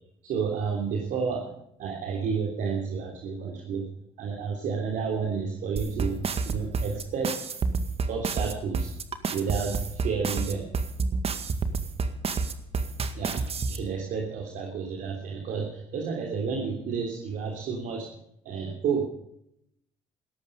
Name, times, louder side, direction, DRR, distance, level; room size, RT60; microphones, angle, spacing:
voice 1, 0.2-1.5 1.8-3.9 4.2-6.2 6.4-7.4 8.1-8.9 9.3-10.7 11.4-11.5 13.1-18.1 18.4-19.1, right 5 dB, 70° right, 1 dB, 3.4 m, -31 dB
sound 1, 5.8-13.8, right 4 dB, 45° right, 2.0 m, -28 dB
17.5 x 14.0 x 5.4 m, 0.74 s
supercardioid pair, 60°, 14 cm